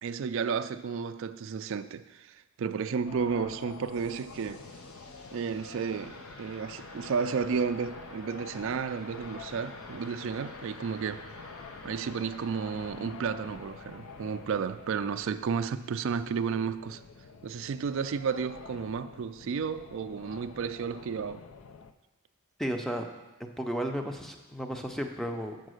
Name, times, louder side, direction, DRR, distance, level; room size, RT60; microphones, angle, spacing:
voice 1, 0.0-4.6 5.3-11.2 11.8-17.0 17.4-21.4, right 6 dB, 60° right, 0.3 m, -32 dB
sound 1, 3.1-21.9, left 4 dB, 60° left, 0.4 m, -48 dB
sound 2, 3.6-16.2, left 2 dB, 80° left, 1.0 m, -51 dB
voice 2, 22.6-23.1 23.4-25.7, equal, ahead, 0.5 m, -34 dB
7.4 x 5.2 x 6.3 m
head